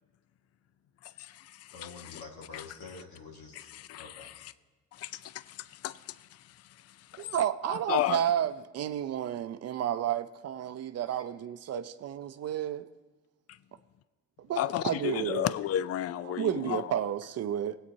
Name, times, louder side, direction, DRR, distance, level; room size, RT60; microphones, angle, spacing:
voice 1, 1.0-1.8 2.1-2.2 2.5-2.6 3.5-4.3 4.9-6.4 7.1-7.3 7.7-8.2 14.6-16.9, left 12 dB, 55° left, 0.4 m, -33 dB
voice 2, 1.7-4.3 11.1-11.2 11.7-12.0, left 4 dB, 70° left, 1.8 m, -47 dB
voice 3, 7.1-12.9 14.4-15.5 16.3-17.8, right 10 dB, 55° right, 0.5 m, -31 dB
20.0 x 8.5 x 2.7 m
cardioid pair, 90°, 30 cm